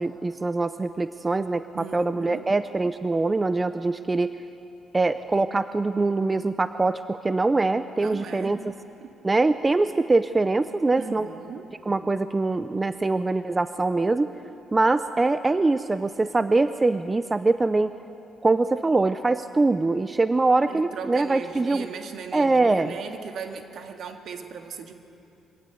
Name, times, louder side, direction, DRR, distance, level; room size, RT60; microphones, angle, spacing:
voice 1, 0.0-4.4 4.9-8.6 9.2-11.3 11.9-14.3 14.7-17.9 18.4-21.9 22.3-23.0, right 3 dB, 20° right, 12 dB, 0.6 m, -23 dB
voice 2, 1.7-2.5 8.0-8.6 9.0-9.1 11.0-11.7 20.7-25.0, right 6 dB, 65° right, 5 dB, 2.0 m, -38 dB
23.5 x 16.5 x 9.3 m, 2.7 s
cardioid pair, 90°, 0 cm